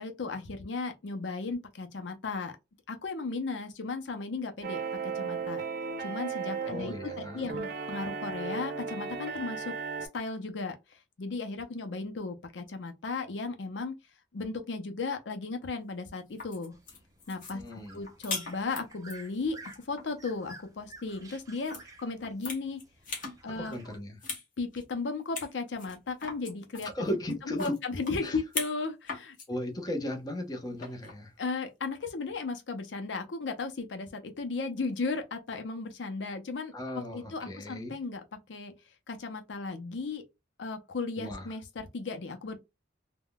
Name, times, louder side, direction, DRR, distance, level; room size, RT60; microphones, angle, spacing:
voice 1, 0.0-2.5 2.9-5.7 6.0-10.8 11.2-14.0 14.3-16.8 17.3-19.6 19.9-22.8 23.4-23.8 24.6-27.2 27.5-29.4 31.4-38.2 38.5-38.7 39.1-40.2 40.6-42.6, left 3 dB, 80° left, 0.6 m, -35 dB
sound 1, 4.6-10.1, right 5 dB, 60° right, 0.7 m, -36 dB
voice 2, 6.6-7.5 17.5-18.0 23.6-24.2 26.9-27.8 28.2-28.4 29.5-31.3 36.7-38.0 41.2-41.5, left 1 dB, 20° left, 0.8 m, -36 dB
sound 2, 16.2-19.2 19.6-20.1 21.6-21.8 22.2-23.4 23.7-24.4 24.7-24.8 25.3-25.5 25.8-28.8 29.1-29.5 30.8-31.2, left 4 dB, 50° left, 1.1 m, -39 dB
sound 3, 16.7-24.0, right 2 dB, 20° right, 0.6 m, -52 dB
3.5 x 2.2 x 2.2 m
head